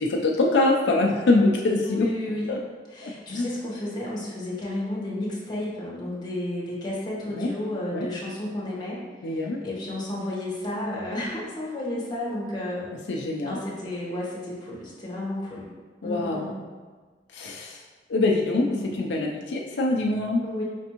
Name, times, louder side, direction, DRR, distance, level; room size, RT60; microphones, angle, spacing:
voice 1, 0.0-2.1 2.5-2.6 3.0-3.5 7.4-7.5 7.9-8.1 9.2-9.6 13.1-13.6 16.0-16.7 17.3-17.8 18.1-20.4, left 2 dB, 80° left, -1 dB, 0.5 m, -24 dB
voice 2, 1.8-2.6 2.9-9.0 9.3-12.9 13.4-15.7 16.0-16.5 18.6-18.9 20.4-20.6, left 1 dB, 25° left, -6 dB, 1.1 m, -32 dB
5.2 x 3.4 x 2.9 m, 1.4 s
head